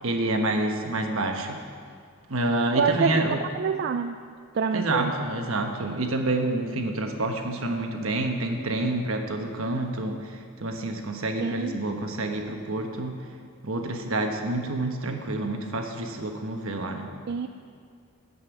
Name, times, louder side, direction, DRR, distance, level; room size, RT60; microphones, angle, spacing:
voice 1, 0.0-1.6 2.3-3.4 4.7-10.3 10.6-13.2 13.6-17.1, right 2 dB, 70° right, 4 dB, 1.2 m, -28 dB
voice 2, 2.7-3.1 3.6-4.2 4.5-5.1 11.4-11.8 17.3-17.5, right 6 dB, 50° right, 7 dB, 0.3 m, -26 dB
13.0 x 5.5 x 8.1 m, 2.2 s
head